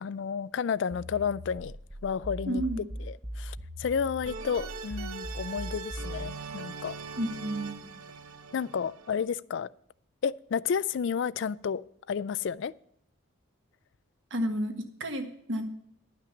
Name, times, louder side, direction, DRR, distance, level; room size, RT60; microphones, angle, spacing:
voice 1, 0.0-1.7 2.0-2.6 3.0-7.0 8.5-9.7 10.2-11.8 12.1-12.7, left 6 dB, 55° left, 0.3 m, -31 dB
sound 1, 0.9-6.4, equal, 20° right, 0.6 m, -40 dB
voice 2, 2.5-2.8 7.2-7.9 14.3-15.7, equal, 60° right, 1.5 m, -31 dB
sound 2, 4.3-9.3, right 4 dB, 80° right, 0.8 m, -41 dB
11.5 x 5.9 x 7.0 m
head